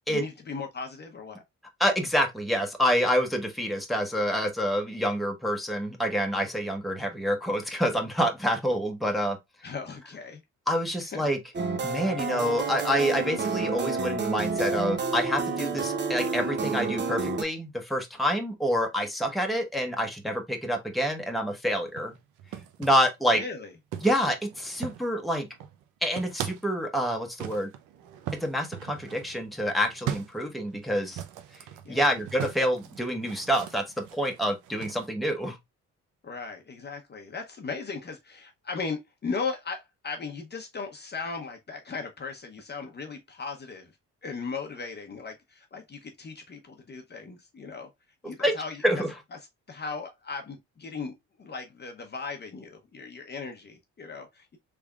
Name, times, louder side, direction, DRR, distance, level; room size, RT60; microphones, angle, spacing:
voice 1, 0.1-1.4 9.6-10.4 11.0-11.3 23.3-23.7 31.8-32.2 36.2-43.9 44.2-47.9 48.2-49.0 49.3-49.4 49.7-51.1 51.4-54.6, left 4 dB, 35° left, 0.8 m, -37 dB
voice 2, 1.8-9.4 10.7-11.4 11.8-22.1 22.8-23.4 24.0-25.5 26.0-27.7 28.4-31.2 31.9-33.8 34.1-35.6 48.4-48.5 48.8-49.1, equal, ahead, 1.0 m, -27 dB
sound 1, 11.5-17.4, right 4 dB, 35° right, 0.8 m, -29 dB
sound 2, 21.8-23.1 23.9-25.2 25.5-26.7 27.4-35.1, right 10 dB, 85° right, 0.7 m, -40 dB
3.5 x 3.4 x 2.3 m
cardioid pair, 90°, 30 cm